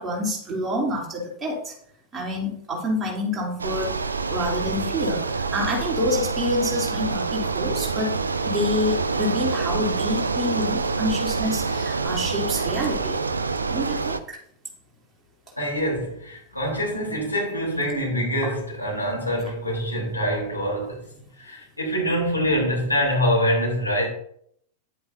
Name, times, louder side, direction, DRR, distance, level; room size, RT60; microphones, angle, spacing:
voice 1, 0.0-1.7 2.1-3.9 4.3-8.2 8.4-13.2 13.7-14.4 18.4-18.5, left 1 dB, 15° right, 3.1 m, -27 dB
Bicycle, 3.6-14.2, right 4 dB, 75° right, 0.5 m, -26 dB
voice 2, 15.6-21.0 21.4-24.1, equal, 85° left, 3.5 m, -25 dB
10.5 x 8.4 x 2.7 m
figure-of-eight pair, 90°, 0 cm